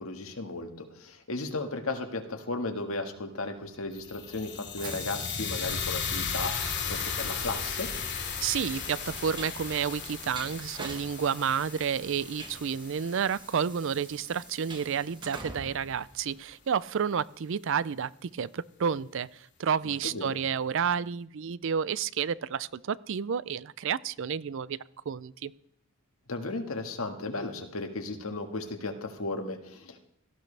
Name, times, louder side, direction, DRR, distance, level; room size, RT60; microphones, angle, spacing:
voice 1, 0.0-7.9 20.0-20.4 26.3-30.0, left 2 dB, 90° left, 5 dB, 1.8 m, -35 dB
Train, 3.6-16.8, right 3 dB, 20° right, 1.5 m, -46 dB
sound 1, 3.9-14.1, left 6 dB, 55° left, 2.4 m, -36 dB
voice 2, 8.4-24.8 25.1-25.5, right 7 dB, 65° right, 20 dB, 0.4 m, -30 dB
18.0 x 14.5 x 3.4 m, 0.72 s
head